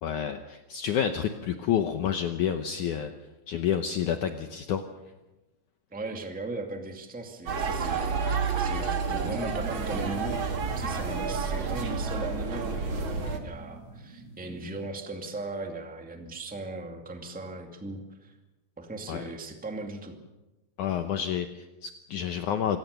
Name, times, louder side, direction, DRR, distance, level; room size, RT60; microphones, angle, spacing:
voice 1, 0.0-3.1 3.5-4.8 19.1-19.2 20.8-22.8, left 9 dB, 75° left, 7 dB, 1.9 m, -29 dB
voice 2, 5.9-18.4 18.8-20.2, right 2 dB, 5° right, 4 dB, 1.2 m, -38 dB
sound 1, 7.5-13.4, right 5 dB, 40° right, 2.1 m, -30 dB
sound 2, 9.2-14.9, right 3 dB, 80° right, 8.5 m, -45 dB
26.0 x 17.0 x 6.8 m, 1.1 s
omnidirectional pair, 4.6 m